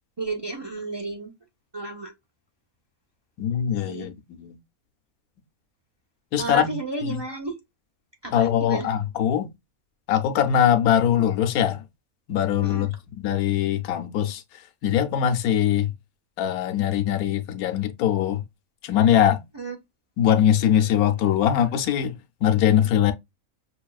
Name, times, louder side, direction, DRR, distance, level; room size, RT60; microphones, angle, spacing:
voice 1, 0.2-1.3 1.7-2.1 3.8-4.1 6.4-7.6 8.2-8.9 12.6-12.9 19.5-19.8, right 3 dB, 40° right, 0.3 m, -32 dB
voice 2, 3.4-4.6 6.3-6.7 7.1-7.2 8.3-9.5 10.1-11.8 12.3-12.9 13.2-14.4 14.8-15.9 16.4-18.4 18.8-19.4 20.2-23.1, left 10 dB, 80° left, 1.1 m, -22 dB
6.2 x 2.3 x 2.3 m
omnidirectional pair, 1.5 m